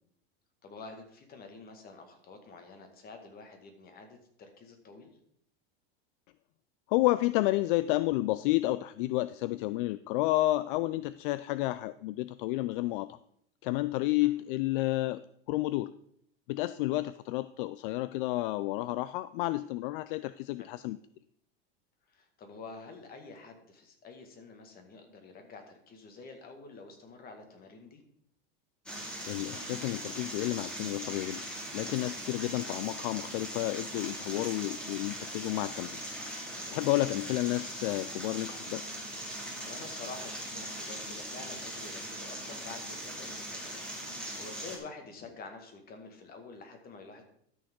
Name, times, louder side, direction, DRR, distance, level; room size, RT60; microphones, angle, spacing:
voice 1, 0.6-5.1 20.6-20.7 22.1-28.0 36.5-36.8 39.6-43.9 44.1-47.2, left 4 dB, 30° left, 5 dB, 1.9 m, -48 dB
voice 2, 6.9-13.2 13.6-15.2 15.5-15.9 16.5-21.0 29.3-31.4 31.7-36.0 36.7-38.8, left 17 dB, 65° left, 15 dB, 0.4 m, -31 dB
sound 1, 28.9-44.8, right 1 dB, 5° left, 2.2 m, -40 dB
13.0 x 6.3 x 3.7 m, 0.69 s
supercardioid pair, 130°, 29 cm